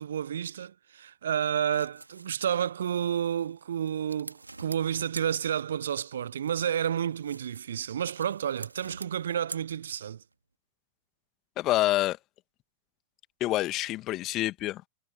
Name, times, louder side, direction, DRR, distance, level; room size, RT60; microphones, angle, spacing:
voice 1, 0.0-10.2, right 9 dB, 65° right, 1.0 m, -30 dB
sound 1, 1.4-6.0 6.3-10.3, right 3 dB, 80° right, 2.5 m, -47 dB
voice 2, 11.6-12.2 13.4-14.8, left 16 dB, 35° left, 2.0 m, -27 dB
figure-of-eight pair, 90°, 0 cm